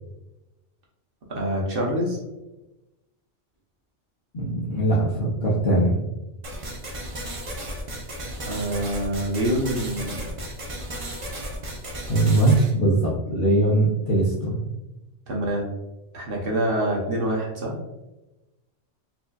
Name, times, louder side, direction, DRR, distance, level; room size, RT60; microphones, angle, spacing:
voice 1, 1.3-2.2 8.5-10.2 15.3-15.7 16.1-17.7, right 1 dB, 55° right, -1 dB, 0.9 m, -26 dB
voice 2, 4.3-6.0 12.1-14.6, right 1 dB, 50° left, -7 dB, 0.8 m, -21 dB
sound 1, 6.4-12.7, right 1 dB, 40° right, 0.5 m, -34 dB
4.3 x 2.7 x 2.3 m, 1.0 s
omnidirectional pair, 1.2 m